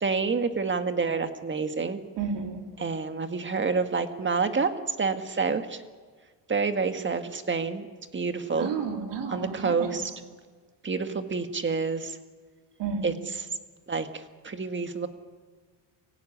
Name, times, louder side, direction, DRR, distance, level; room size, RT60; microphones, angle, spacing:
voice 1, 0.0-2.0 2.8-5.8 6.5-7.9 8.1-8.7 9.3-10.1 10.8-12.2 13.0-13.5 13.9-15.1, right 4 dB, 25° right, 8 dB, 1.7 m, -28 dB
voice 2, 2.2-2.6 8.6-10.0 12.8-13.1, right 5 dB, 65° right, 3 dB, 3.5 m, -32 dB
24.5 x 15.5 x 9.8 m, 1.5 s
cardioid pair, 115°, 45 cm